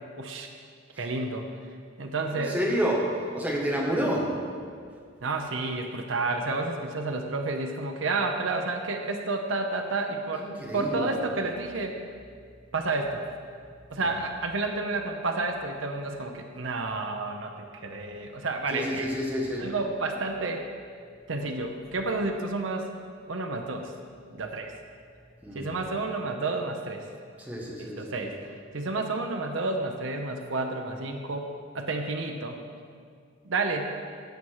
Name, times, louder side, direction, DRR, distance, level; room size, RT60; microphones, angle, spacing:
voice 1, 0.2-0.5 1.0-1.5 2.0-2.6 5.2-12.0 12.7-13.2 13.9-19.1 19.6-20.7 21.3-22.9 23.3-23.9 24.3-24.7 25.5-27.1 27.8-31.5 31.7-32.6 33.4-33.9, right 3 dB, 70° right, 3 dB, 0.8 m, -30 dB
voice 2, 2.3-4.3 10.4-11.1 18.7-19.7 25.4-25.7 27.4-28.2, equal, 10° right, -3 dB, 1.6 m, -29 dB
16.0 x 5.7 x 4.8 m, 2.1 s
head